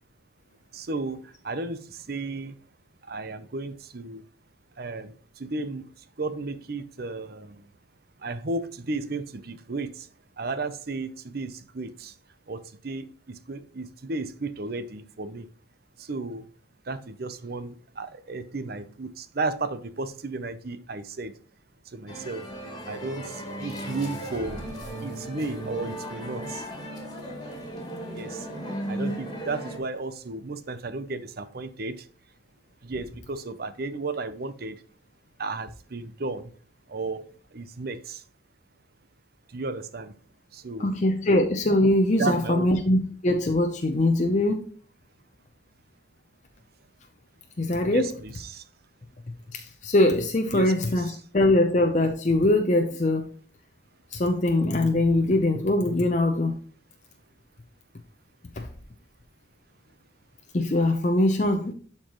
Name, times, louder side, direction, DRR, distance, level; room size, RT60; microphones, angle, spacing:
voice 1, 0.7-2.5 3.1-4.2 4.8-5.9 6.2-7.6 8.2-10.1 10.4-12.1 12.5-15.5 16.0-16.5 16.9-21.3 21.9-22.4 22.9-24.6 25.0-26.6 28.1-28.5 28.9-32.0 32.8-34.8 35.4-36.5 36.9-37.2 37.5-38.2 39.5-40.1 40.5-40.9 42.2-42.7 47.9-48.6 50.5-51.1, right 3 dB, 50° right, 0.6 m, -34 dB
sound 1, 22.1-29.8, right 1 dB, 20° left, 2.0 m, -36 dB
voice 2, 40.8-44.7 47.6-48.1 49.5-53.2 54.1-56.5 58.6-58.7 60.5-61.7, left 1 dB, 40° left, 0.6 m, -22 dB
12.0 x 4.5 x 3.0 m
head